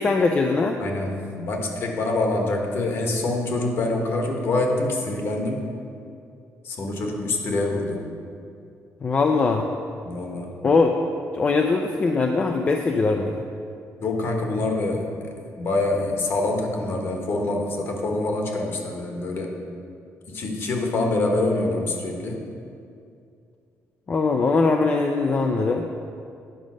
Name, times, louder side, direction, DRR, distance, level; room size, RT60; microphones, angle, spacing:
voice 1, 0.0-0.8 9.0-9.7 10.6-10.9 11.3-13.4 24.1-25.8, left 4 dB, 25° left, 3 dB, 0.4 m, -21 dB
voice 2, 0.8-5.7 6.6-8.1 10.0-10.7 14.0-19.6 20.3-22.4, left 2 dB, 50° left, 2 dB, 1.3 m, -25 dB
10.0 x 5.2 x 6.2 m, 2.5 s
cardioid pair, 170°, 5 cm